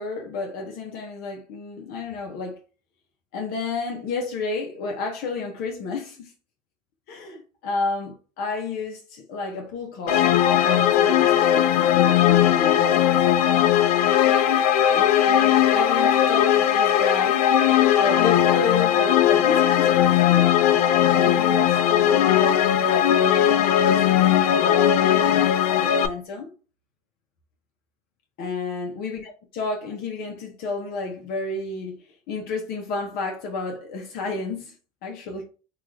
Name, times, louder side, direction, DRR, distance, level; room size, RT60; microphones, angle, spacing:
voice 1, 0.0-2.6 3.3-6.3 7.1-13.1 14.9-17.4 18.0-20.5 21.1-25.3 25.7-26.5 28.4-34.8 35.0-35.4, left 3 dB, 55° left, 0.8 m, -31 dB
sound 1, 10.1-26.1, left 10 dB, 90° left, 0.4 m, -19 dB
2.9 x 2.4 x 3.7 m
supercardioid pair, 105°, 19 cm